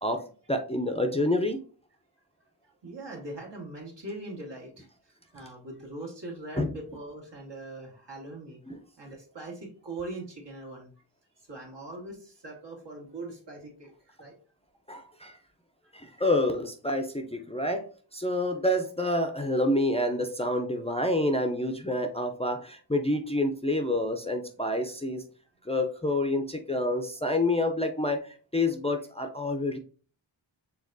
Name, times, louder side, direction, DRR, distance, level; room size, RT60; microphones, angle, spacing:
voice 1, 0.0-1.6 6.6-6.7 8.7-8.8 14.9-15.4 15.9-17.8 18.1-25.2 25.6-29.8, left 1 dB, 15° left, 4 dB, 0.5 m, -28 dB
voice 2, 2.8-4.9 5.3-8.6 9.0-10.9 11.5-14.4, right 2 dB, 65° right, -1 dB, 1.8 m, -41 dB
5.1 x 3.5 x 2.6 m, 0.40 s
cardioid pair, 40°, 46 cm